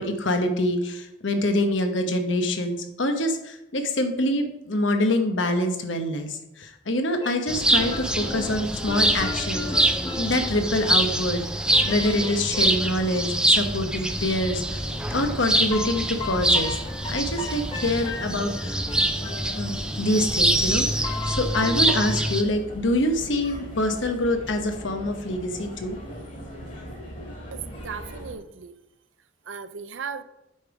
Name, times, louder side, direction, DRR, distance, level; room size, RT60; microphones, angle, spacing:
voice 1, 0.0-11.4 11.8-16.8 17.1-18.8 19.6-26.0, left 1 dB, 75° left, 6 dB, 1.1 m, -26 dB
sound 1, 7.2-11.0 11.7-12.9 15.7-19.8 21.0-22.2, left 2 dB, 25° left, 1.4 m, -36 dB
sound 2, 7.5-22.4, right 1 dB, 5° right, 0.5 m, -25 dB
sound 3, 14.2-28.4, equal, 45° left, 2.6 m, -40 dB
voice 2, 27.5-28.7 29.5-30.2, right 6 dB, 75° right, 11 dB, 0.6 m, -36 dB
8.4 x 5.3 x 4.9 m, 0.89 s
head